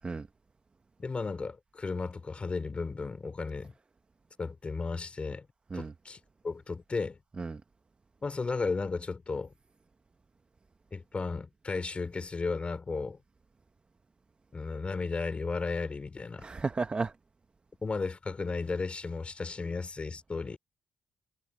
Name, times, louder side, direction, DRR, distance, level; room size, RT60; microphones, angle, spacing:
voice 1, 1.0-3.7 4.4-5.5 5.7-6.2 6.4-7.2 8.2-9.5 10.9-13.2 14.5-16.5 17.8-20.6, left 4 dB, 35° left, 3.8 m, -34 dB
voice 2, 16.4-17.1, right 4 dB, 35° right, 1.3 m, -33 dB
supercardioid pair, 60°, 3 cm